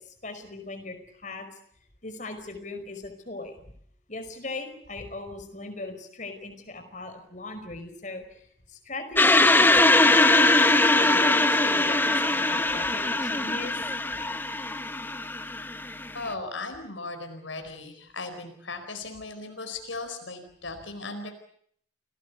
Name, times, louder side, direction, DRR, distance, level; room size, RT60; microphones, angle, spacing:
voice 1, 0.0-1.5 2.0-3.6 4.1-10.2 10.9-13.8, left 2 dB, 40° left, 8 dB, 5.0 m, -39 dB
sound 1, 9.2-16.3, left 2 dB, 10° left, 1.2 m, -21 dB
voice 2, 16.1-21.3, left 3 dB, 80° left, 6 dB, 4.6 m, -37 dB
29.5 x 19.0 x 8.3 m, 0.64 s
head